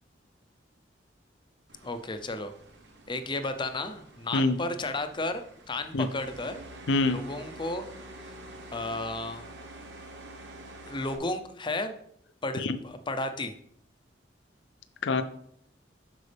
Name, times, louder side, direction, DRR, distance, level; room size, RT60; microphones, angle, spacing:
sound 1, 1.7-11.2, right 1 dB, 65° right, 1.0 m, -47 dB
voice 1, 1.8-2.5 3.1-6.6 7.1-7.9 8.2-8.3 8.7-9.5 10.9-12.0 12.4-13.5, left 2 dB, 25° left, 8 dB, 0.6 m, -33 dB
voice 2, 6.9-7.2 12.6-12.8 15.0-15.2, left 3 dB, 70° left, 11 dB, 0.5 m, -25 dB
8.1 x 6.2 x 3.4 m, 0.69 s
head